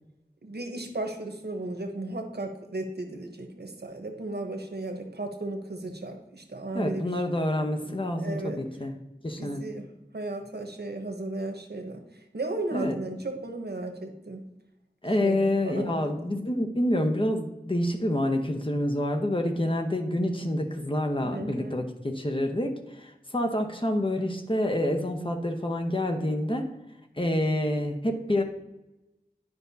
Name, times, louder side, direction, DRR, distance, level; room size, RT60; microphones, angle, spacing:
voice 1, 0.4-7.1 7.8-8.6 9.4-9.9 10.1-14.4 15.2-16.1 21.2-21.8, right 2 dB, 85° right, 4 dB, 0.9 m, -35 dB
voice 2, 6.7-9.0 9.2-9.7 12.7-13.0 15.0-26.7 27.2-28.4, left 1 dB, 30° left, 3 dB, 0.9 m, -27 dB
10.5 x 5.2 x 2.7 m, 0.99 s
wide cardioid pair, 45°, 16 cm